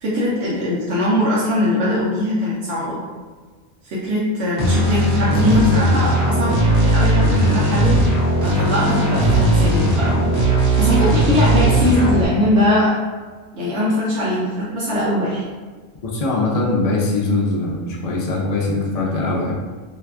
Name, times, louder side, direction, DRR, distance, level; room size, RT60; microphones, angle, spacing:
voice 1, 0.0-3.0 3.8-8.0 8.4-10.3 10.8-12.9 13.5-15.4, left 1 dB, 75° right, -7 dB, 1.0 m, -21 dB
sound 1, 4.6-12.3, right 1 dB, 55° right, 1.3 m, -17 dB
voice 2, 16.0-19.5, left 2 dB, 45° left, -4 dB, 0.6 m, -21 dB
2.8 x 2.3 x 3.4 m, 1.4 s
omnidirectional pair, 1.2 m